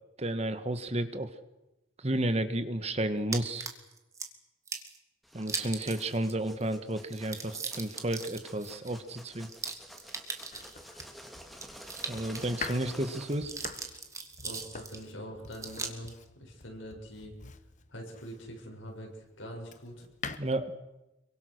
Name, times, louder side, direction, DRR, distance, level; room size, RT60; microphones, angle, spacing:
voice 1, 0.2-1.3 2.0-3.7 5.3-9.5 12.1-13.5 20.4-20.7, right 1 dB, 30° right, 10 dB, 1.5 m, -32 dB
sound 1, 3.3-4.3 4.7-5.0 5.4-6.3 6.6-6.7 7.0-11.0 11.5-12.8 13.1-15.0 15.5-16.1, right 4 dB, 15° right, 2.2 m, -39 dB
sound 2, 5.2-14.0, equal, ahead, 2.6 m, -50 dB
Domestic sounds home sounds, 10.5-18.7 19.2-20.4, left 5 dB, 40° left, 1.2 m, -45 dB
voice 2, 14.4-17.3 17.9-19.1 19.4-20.0, equal, 80° left, 1 dB, 7.1 m, -44 dB
27.0 x 23.5 x 6.6 m, 0.98 s
head